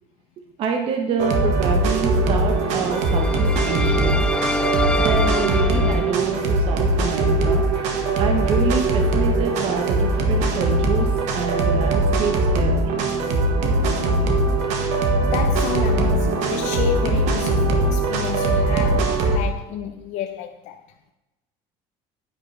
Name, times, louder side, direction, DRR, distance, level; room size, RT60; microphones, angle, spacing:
voice 1, 0.6-4.3 5.0-7.6 8.2-12.9, right 5 dB, 45° right, 1.0 m, -27 dB
sound 1, 1.2-19.4, right 2 dB, 65° right, 1.5 m, -21 dB
sound 2, 2.7-6.1, left 2 dB, 5° left, 0.3 m, -26 dB
voice 2, 15.2-20.8, left 11 dB, 65° left, 0.7 m, -30 dB
10.0 x 9.0 x 3.3 m
cardioid pair, 155°, 13 cm